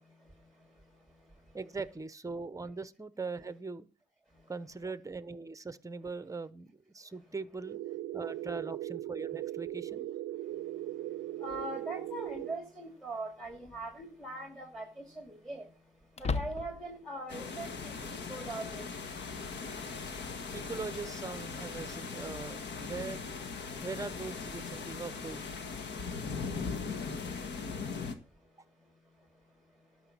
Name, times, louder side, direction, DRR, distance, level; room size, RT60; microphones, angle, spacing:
voice 1, 1.5-3.9 4.5-7.8 8.1-10.1 20.5-23.3 23.8-25.5, right 4 dB, 15° right, 0.9 m, -41 dB
sound 1, 7.6-12.6, right 14 dB, 75° right, 0.5 m, -39 dB
voice 2, 11.4-15.6 16.2-18.9, right 2 dB, ahead, 2.5 m, -41 dB
sound 2, 11.5-11.6 13.4-13.9 14.2-14.3 16.1-17.0, left 4 dB, 35° left, 0.8 m, -35 dB
sound 3, 17.3-28.1, left 5 dB, 60° left, 1.7 m, -39 dB
11.5 x 6.0 x 7.3 m
cardioid pair, 90°, 20 cm